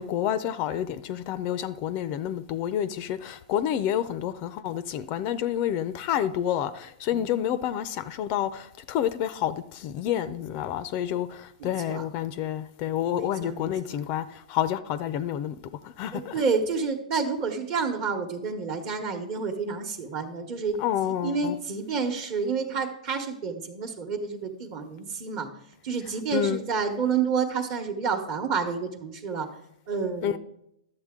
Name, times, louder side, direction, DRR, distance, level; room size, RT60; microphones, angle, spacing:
voice 1, 0.0-15.5 16.0-16.3 20.8-21.5 26.3-26.6 30.2-30.4, left 10 dB, 35° left, 0.4 m, -29 dB
voice 2, 11.6-12.1 13.2-14.1 16.1-25.5 25.8-29.5 29.9-30.4, right 5 dB, 40° right, 1.1 m, -29 dB
11.5 x 7.7 x 3.7 m
hypercardioid pair, 140°, 4 cm